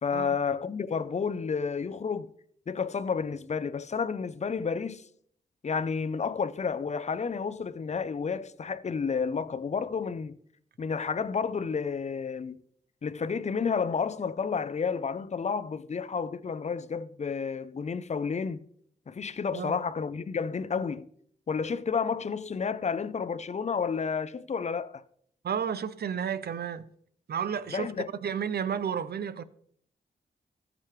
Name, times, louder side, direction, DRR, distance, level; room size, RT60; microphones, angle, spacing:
voice 1, 0.0-2.3 2.7-5.0 5.6-10.4 10.8-12.6 13.0-18.6 19.1-21.1 21.5-25.0 27.7-28.1, left 5 dB, 40° left, 0.6 m, -31 dB
voice 2, 25.4-26.9 27.3-27.9 28.2-29.4, right 7 dB, 65° right, 0.6 m, -32 dB
14.0 x 5.0 x 3.2 m
cardioid pair, 45°, 18 cm